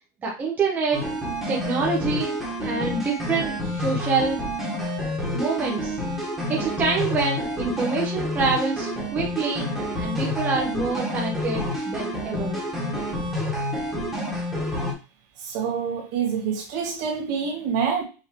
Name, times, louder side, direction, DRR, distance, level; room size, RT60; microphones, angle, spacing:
voice 1, 0.2-1.0 1.5-2.3 2.6-4.4 5.3-6.0 6.5-9.7 10.0-12.6, right 4 dB, 20° right, 0.9 m, -26 dB
sound 1, 0.9-14.9, left 1 dB, ahead, 1.5 m, -28 dB
voice 2, 15.4-18.0, right 6 dB, 50° right, 2.0 m, -26 dB
5.8 x 2.9 x 3.1 m
supercardioid pair, 160°, 10 cm